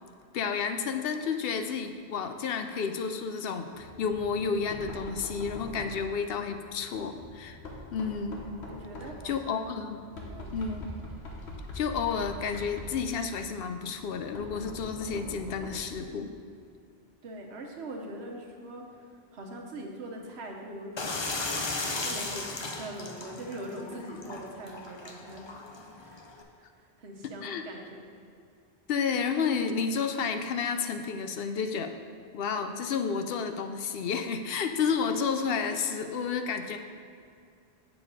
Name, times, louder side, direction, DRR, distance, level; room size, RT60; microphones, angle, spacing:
voice 1, 0.3-7.6 7.9-8.5 9.2-10.0 10.5-10.9 11.7-16.3 27.4-27.7 28.9-31.9 32.3-36.8, left 6 dB, 70° left, 7 dB, 0.7 m, -31 dB
Knock, 3.7-16.0, left 1 dB, 85° left, 1.3 m, -44 dB
voice 2, 8.7-9.7 10.3-10.8 17.2-21.4 21.7-28.0, right 1 dB, 85° right, 1 dB, 1.2 m, -42 dB
sound 1, 21.0-26.4, left 3 dB, 35° left, 0.5 m, -36 dB
7.0 x 6.9 x 4.0 m, 2.4 s
omnidirectional pair, 1.1 m